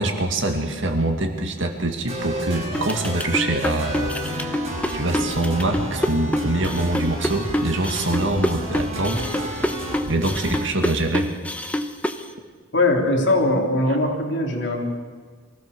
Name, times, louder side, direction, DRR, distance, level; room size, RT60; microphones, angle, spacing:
voice 1, 0.0-4.6 4.9-9.8 10.1-11.3, right 2 dB, 70° right, 4 dB, 2.3 m, -24 dB
sound 1, 2.1-10.6, right 1 dB, 30° right, 6.2 m, -31 dB
sound 2, 2.7-12.2, left 1 dB, 5° left, 0.9 m, -26 dB
voice 2, 12.7-14.8, left 2 dB, 60° left, 0 dB, 3.6 m, -20 dB
23.5 x 16.0 x 6.9 m, 1.5 s
head